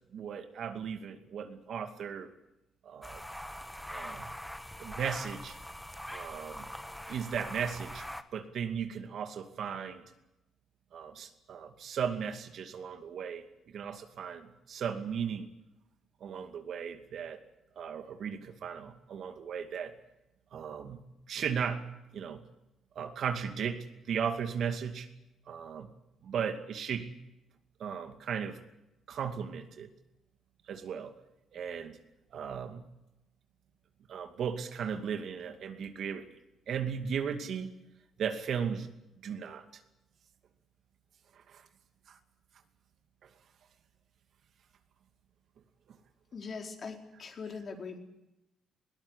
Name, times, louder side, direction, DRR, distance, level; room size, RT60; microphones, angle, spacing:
voice 1, 0.1-2.3 2.8-3.2 3.9-4.3 4.8-5.6 6.1-6.7 7.1-10.0 10.9-15.5 16.2-17.4 17.8-20.0 20.5-21.9 22.1-22.4 23.0-25.1 25.5-25.9 26.2-27.1 27.8-28.6 29.1-29.9 30.7-31.1 31.5-32.0 32.3-32.8 34.1-36.3 36.7-37.7 38.2-38.9 39.2-39.6 41.3-41.7 42.1-42.2 43.2-43.3, right 7 dB, 65° right, 7 dB, 2.4 m, -36 dB
sound 1, 3.0-8.2, equal, 5° left, 1.5 m, -43 dB
voice 2, 46.3-48.0, left 5 dB, 45° left, 3 dB, 4.6 m, -41 dB
21.0 x 19.0 x 10.0 m, 0.91 s
cardioid pair, 90°, 0 cm